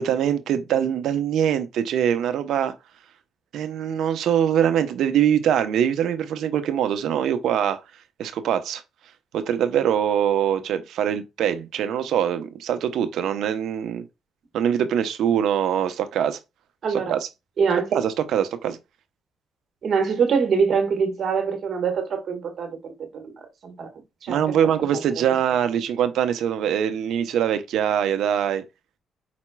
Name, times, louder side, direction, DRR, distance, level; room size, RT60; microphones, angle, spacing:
voice 1, 0.0-2.7 3.5-7.8 8.2-8.8 9.3-14.0 14.5-16.4 16.9-17.2 17.9-18.8 24.3-28.6, right 9 dB, 75° right, 0.8 m, -23 dB
voice 2, 16.8-17.2 17.6-18.0 19.8-23.9 24.2-24.9, right 6 dB, 60° right, 1.5 m, -24 dB
5.1 x 4.3 x 2.2 m
cardioid pair, 90°, 0 cm